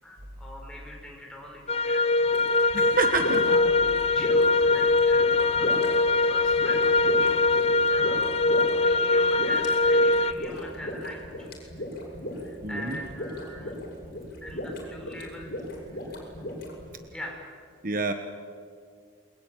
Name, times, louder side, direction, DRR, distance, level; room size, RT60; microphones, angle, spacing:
voice 1, 0.0-8.3 8.8-11.7 12.4-13.7 14.4-16.4 17.1-17.6, left 1 dB, 5° left, -1 dB, 5.7 m, -43 dB
sound 1, 1.7-10.3, left 3 dB, 30° left, 0.8 m, -22 dB
sound 2, 2.2-16.9, left 1 dB, 50° left, 6.9 m, -36 dB
voice 2, 2.7-3.6 12.6-13.0 13.5-13.6 17.8-18.1, right 3 dB, 45° right, 7 dB, 1.2 m, -27 dB
28.5 x 21.5 x 9.3 m, 2.2 s
head